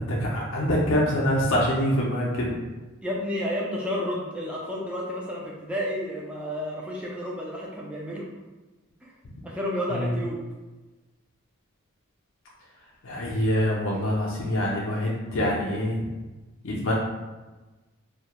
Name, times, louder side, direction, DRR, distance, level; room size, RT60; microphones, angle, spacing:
voice 1, 0.0-2.6 9.9-10.1 13.0-16.1 16.6-16.9, equal, 70° left, -4 dB, 0.4 m, -25 dB
voice 2, 3.0-8.2 9.0-9.1 9.4-10.4, equal, 5° right, -4 dB, 0.3 m, -31 dB
2.2 x 2.0 x 2.8 m, 1.2 s
head